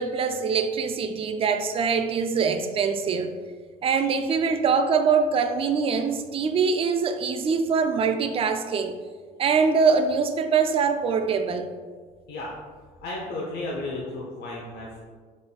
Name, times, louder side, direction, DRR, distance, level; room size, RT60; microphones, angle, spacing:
voice 1, 0.0-3.3 3.8-8.9 9.4-11.7, right 5 dB, 35° right, 7 dB, 0.4 m, -23 dB
voice 2, 13.0-15.0, left 2 dB, 70° left, -3 dB, 0.8 m, -33 dB
5.0 x 4.2 x 2.3 m, 1.5 s
cardioid pair, 110°, 17 cm